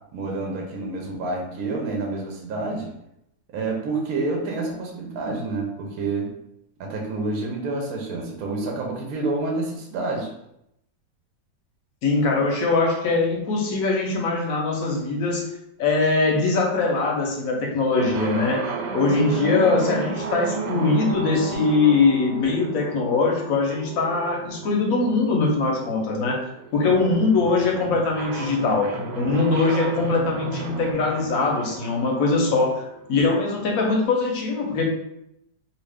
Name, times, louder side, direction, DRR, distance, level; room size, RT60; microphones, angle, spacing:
voice 1, 0.1-2.9 3.5-6.3 6.8-10.3, right 3 dB, 65° right, 0 dB, 1.1 m, -28 dB
voice 2, 12.0-15.5 15.8-18.6 18.9-26.4 26.7-32.8 33.1-34.8, left 3 dB, 65° left, 0 dB, 0.9 m, -22 dB
sound 1, 18.0-33.7, right 4 dB, 80° right, 1.2 m, -33 dB
2.8 x 2.6 x 3.3 m, 0.80 s
omnidirectional pair, 2.0 m